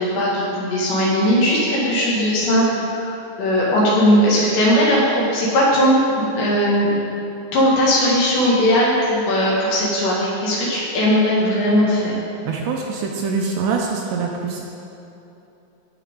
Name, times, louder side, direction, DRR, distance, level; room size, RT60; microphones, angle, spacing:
voice 1, 0.0-6.9 7.5-12.2, equal, 70° left, -6 dB, 4.1 m, -18 dB
voice 2, 12.5-14.6, right 5 dB, 80° right, 0 dB, 2.6 m, -24 dB
16.0 x 7.1 x 3.8 m, 2.8 s
omnidirectional pair, 5.4 m